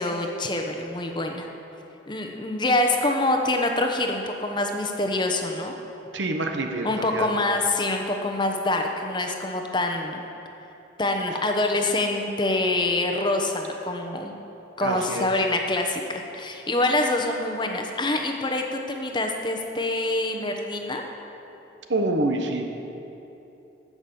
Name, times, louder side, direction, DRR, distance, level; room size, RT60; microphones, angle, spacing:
voice 1, 0.0-1.5 2.1-5.8 6.8-10.2 11.0-14.3 14.8-21.0, left 2 dB, 25° left, 3 dB, 0.9 m, -25 dB
voice 2, 6.1-7.3 14.8-15.3 21.9-22.7, right 2 dB, 75° right, 4 dB, 1.1 m, -26 dB
15.5 x 6.1 x 6.9 m, 3.0 s
head